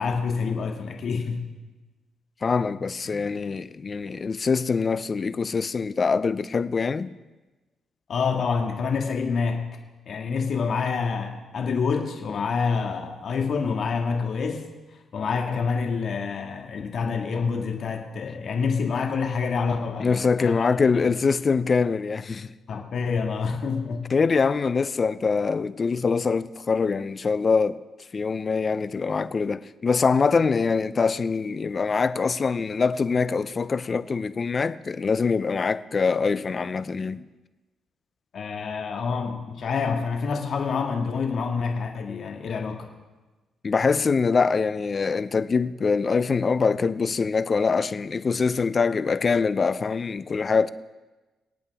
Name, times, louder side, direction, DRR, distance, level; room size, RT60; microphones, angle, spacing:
voice 1, 0.0-1.4 3.0-3.2 8.1-9.7 10.1-14.7 15.1-20.7 20.9-21.0 22.7-24.1 38.3-42.9, left 5 dB, 55° left, 1.9 m, -27 dB
voice 2, 2.4-7.1 20.0-22.5 24.1-27.8 28.1-37.3 43.6-50.7, left 5 dB, 35° left, 0.5 m, -24 dB
26.0 x 8.7 x 3.6 m
cardioid pair, 90°, 0 cm